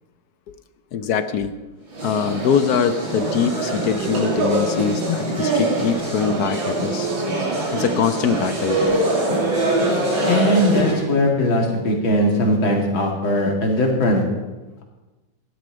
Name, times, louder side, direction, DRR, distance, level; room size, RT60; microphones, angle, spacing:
voice 1, 0.9-1.5 2.0-7.1 7.7-9.0, left 7 dB, 65° left, 10 dB, 1.1 m, -23 dB
sound 1, 1.9-11.1, right 2 dB, 80° right, 3.7 m, -23 dB
voice 2, 10.3-14.2, left 1 dB, 90° left, 0 dB, 3.1 m, -19 dB
14.0 x 11.5 x 5.1 m, 1.1 s
omnidirectional pair, 2.1 m